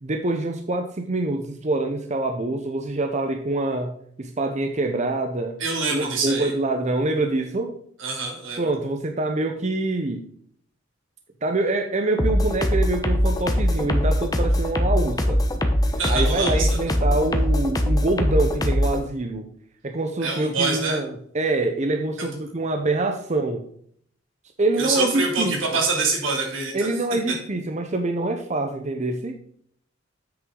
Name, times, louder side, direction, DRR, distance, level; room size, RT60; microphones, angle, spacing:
voice 1, 0.0-5.6 5.9-7.8 8.6-10.3 11.4-15.4 16.1-19.5 19.8-23.7 24.6-25.8 26.7-29.4, right 2 dB, 40° right, 5 dB, 0.7 m, -25 dB
voice 2, 5.6-6.5 8.0-8.6 16.0-16.7 20.2-21.0 24.8-26.9, right 4 dB, 90° right, 1 dB, 2.7 m, -25 dB
sound 1, 12.2-19.0, equal, 20° left, 0.9 m, -21 dB
8.0 x 6.5 x 3.8 m, 0.63 s
head